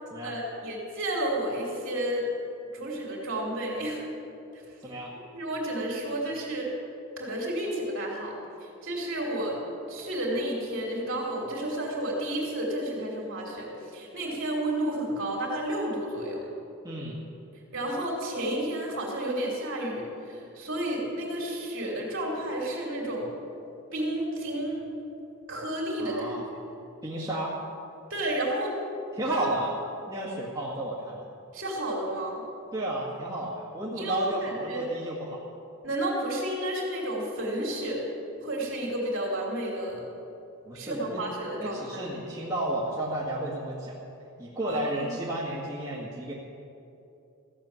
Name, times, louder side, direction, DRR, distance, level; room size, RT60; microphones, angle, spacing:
voice 1, 0.2-2.3 2.7-4.0 5.3-6.7 7.2-8.3 8.6-9.6 9.9-16.5 17.7-23.3 23.9-24.8 25.5-26.6 28.1-28.8 29.3-29.4 31.5-32.4 33.9-34.9 35.8-38.0 38.4-40.1 40.7-42.1 44.7-45.1, right 1 dB, 60° right, -3 dB, 3.3 m, -31 dB
voice 2, 4.8-5.1 16.8-17.2 26.0-26.4 27.0-27.6 29.1-29.7 30.1-31.3 32.7-35.4 40.7-41.2 41.6-44.0 44.4-46.3, right 1 dB, 15° right, -7 dB, 1.8 m, -32 dB
15.0 x 7.4 x 8.9 m, 2.7 s
head